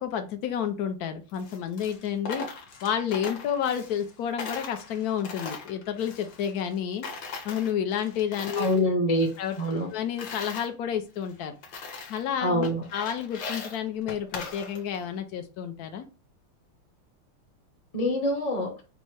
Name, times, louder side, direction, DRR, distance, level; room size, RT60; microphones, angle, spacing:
voice 1, 0.0-2.5 2.8-7.1 7.4-8.9 9.4-9.6 9.9-11.5 12.1-16.0, left 8 dB, 85° left, 7 dB, 0.8 m, -30 dB
Coin (dropping), 1.3-4.1 4.4-6.8 7.0-8.8 9.2-10.7 11.2-11.3 11.6-12.3 12.6-15.0, left 4 dB, 60° left, 1.5 m, -40 dB
voice 2, 8.6-9.3 9.6-9.9 12.4-12.8 17.9-18.7, equal, 35° left, 1 dB, 0.5 m, -25 dB
5.4 x 2.1 x 4.6 m, 0.33 s
omnidirectional pair, 2.3 m